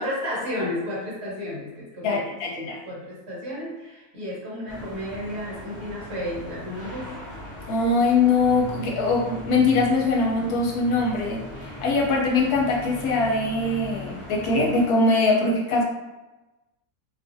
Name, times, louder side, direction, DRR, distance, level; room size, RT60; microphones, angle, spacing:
voice 1, 0.0-7.2, left 1 dB, 50° right, -6 dB, 0.9 m, -33 dB
voice 2, 2.0-2.8 7.7-15.8, left 3 dB, 80° left, -1 dB, 1.2 m, -22 dB
sound 1, 4.7-14.9, left 1 dB, 25° left, 0.4 m, -39 dB
2.6 x 2.4 x 2.6 m, 1.1 s
omnidirectional pair, 1.6 m